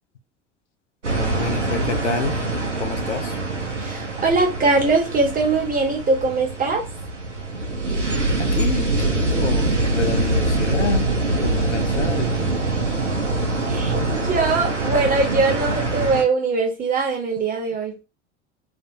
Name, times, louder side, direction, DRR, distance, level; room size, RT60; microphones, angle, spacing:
sound 1, 1.0-16.2, right 2 dB, 90° right, 0.6 m, -24 dB
voice 1, 1.1-2.4 2.8-3.4 8.5-12.5, left 5 dB, 80° left, 0.6 m, -28 dB
voice 2, 3.8-6.8 12.6-12.8 13.7-18.0, right 3 dB, 25° right, 0.9 m, -21 dB
2.6 x 2.4 x 2.5 m
figure-of-eight pair, 70°, 35 cm